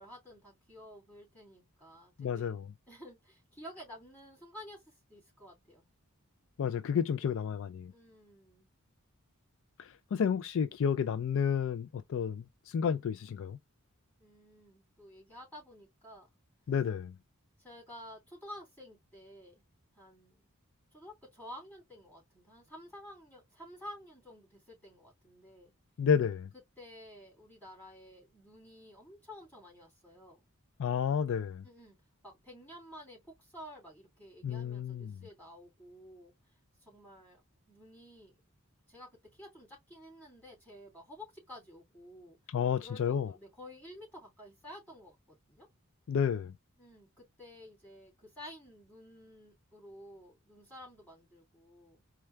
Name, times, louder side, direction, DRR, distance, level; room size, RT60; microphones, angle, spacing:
voice 1, 0.0-2.6 2.9-5.9 7.9-8.7 14.2-16.3 17.6-19.6 19.9-20.5 20.9-25.7 26.8-30.5 31.6-32.0 32.2-36.3 36.8-38.4 38.9-42.4 42.8-45.7 46.8-52.0, left 1 dB, 10° left, 2.9 m, -52 dB
voice 2, 2.2-2.7 6.6-7.9 9.8-13.6 16.7-17.1 26.0-26.5 30.8-31.6 34.4-35.1 42.5-43.3 46.1-46.5, left 7 dB, 60° left, 0.3 m, -31 dB
4.4 x 2.2 x 3.2 m
head